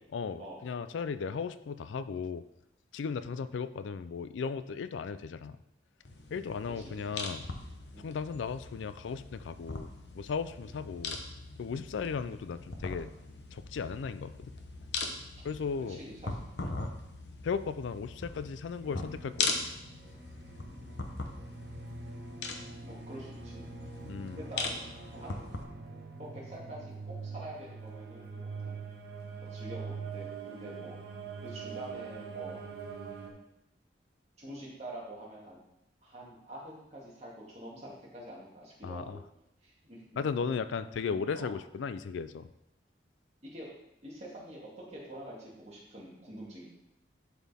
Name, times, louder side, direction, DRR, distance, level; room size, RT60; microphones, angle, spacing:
voice 1, 0.1-2.4 2.9-5.6 6.3-7.4 8.0-9.9 10.1-11.2 11.6-13.1 13.5-14.3 15.4-16.0 17.4-19.5 24.0-24.4 38.8-39.2 40.2-42.5, left 5 dB, 80° left, 13 dB, 0.4 m, -36 dB
sound 1, 6.1-25.6, left 3 dB, 65° left, 0.8 m, -40 dB
voice 2, 6.7-7.3 7.9-8.1 10.6-10.7 11.9-12.2 15.4-15.5 15.9-16.9 20.7-21.4 22.8-23.6 24.4-24.8 25.1-25.3 26.2-28.8 29.5-31.0 31.4-32.6 34.4-35.6 36.0-39.2 39.6-40.0 41.3-41.6 43.4-43.7 44.0-46.7, right 1 dB, 35° right, -5 dB, 2.2 m, -46 dB
sound 2, 18.8-33.3, right 4 dB, 60° right, 1.1 m, -44 dB
11.0 x 4.2 x 3.5 m, 0.84 s
head